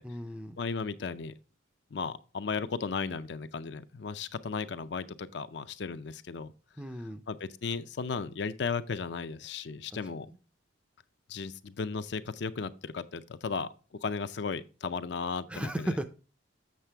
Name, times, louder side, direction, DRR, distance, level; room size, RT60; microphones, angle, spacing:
voice 1, 0.0-0.6 6.8-7.2 9.9-10.0 15.5-16.0, right 1 dB, 5° right, 0.4 m, -35 dB
voice 2, 0.6-1.3 1.9-6.5 7.3-10.3 11.3-13.7 14.0-15.9, left 5 dB, 60° left, 0.5 m, -35 dB
7.5 x 6.5 x 3.3 m
head